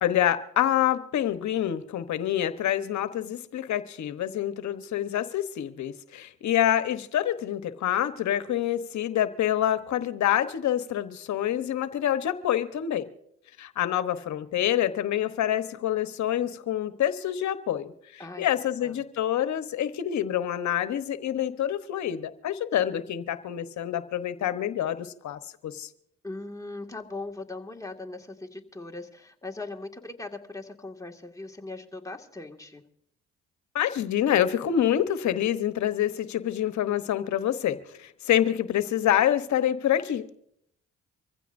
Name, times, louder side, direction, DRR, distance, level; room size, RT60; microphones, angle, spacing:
voice 1, 0.0-13.1 13.6-25.9 33.7-40.4, left 11 dB, 70° left, 11 dB, 1.1 m, -27 dB
voice 2, 18.2-19.0 26.2-32.8, left 2 dB, 10° left, 1 dB, 2.0 m, -39 dB
25.0 x 15.5 x 2.6 m, 0.70 s
supercardioid pair, 55°, 30 cm